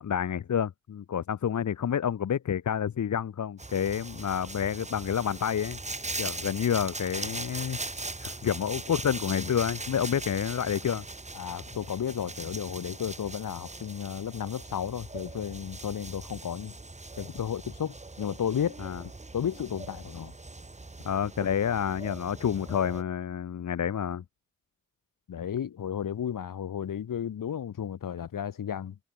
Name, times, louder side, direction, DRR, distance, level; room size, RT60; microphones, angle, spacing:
voice 1, 0.0-5.8 6.2-7.8 8.2-11.0 18.8-19.0 21.0-24.2, left 8 dB, 65° left, 1.1 m, -29 dB
sound 1, 3.6-23.0, right 2 dB, 20° right, 3.4 m, -40 dB
voice 2, 11.3-16.7 17.2-18.8 19.3-20.3 25.3-29.0, left 9 dB, 90° left, 4.1 m, -33 dB
wide cardioid pair, 105°, 32 cm